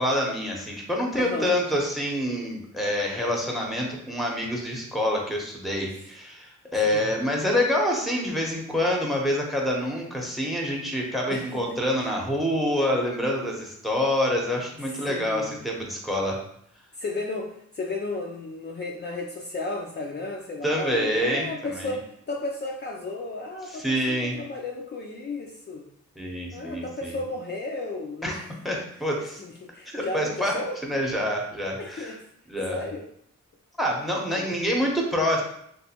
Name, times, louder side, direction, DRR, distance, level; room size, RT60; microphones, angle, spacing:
voice 1, 0.0-16.4 20.6-22.0 23.7-24.4 26.2-27.2 28.2-28.4 28.6-29.4 29.9-30.5 30.8-32.2 32.5-32.8 33.8-35.4, equal, ahead, 0 dB, 0.9 m, -27 dB
voice 2, 1.2-1.6 5.9-6.1 6.7-7.1 11.3-11.8 14.8-15.7 16.9-25.8 26.5-28.4 28.7-28.8 29.4-30.8 31.8-32.2 32.7-33.0 34.3-34.5, left 2 dB, 35° left, -1 dB, 0.4 m, -34 dB
3.2 x 2.6 x 2.9 m, 0.70 s
cardioid pair, 65°, 30 cm